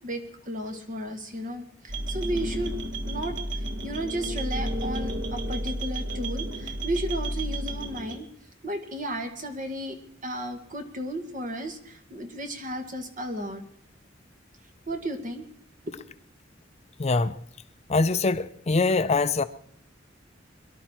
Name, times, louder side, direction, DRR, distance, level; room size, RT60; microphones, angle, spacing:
voice 1, 0.0-2.7 3.1-8.3 8.6-13.6 14.9-15.5 15.8-15.9, right 1 dB, 45° right, 1.9 m, -34 dB
sound 1, 1.9-8.2, right 1 dB, 75° right, 1.5 m, -31 dB
voice 2, 17.0-17.3 17.9-19.4, left 3 dB, 35° left, 0.5 m, -23 dB
23.0 x 12.0 x 4.5 m
head